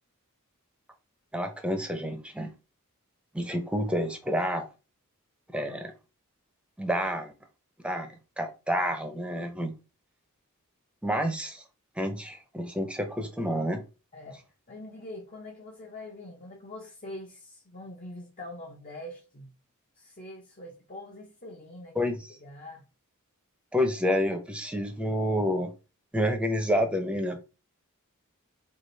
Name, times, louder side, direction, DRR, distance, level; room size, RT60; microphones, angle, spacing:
voice 1, 1.3-2.5 3.3-4.7 5.5-5.9 6.8-7.3 7.8-9.7 11.0-11.6 12.0-13.8 22.0-22.2 23.7-25.7 26.1-27.4, equal, 5° right, 0.7 m, -29 dB
voice 2, 14.1-19.5 20.0-22.1 22.4-22.9, left 1 dB, 40° left, 0.9 m, -44 dB
4.8 x 2.5 x 3.9 m
head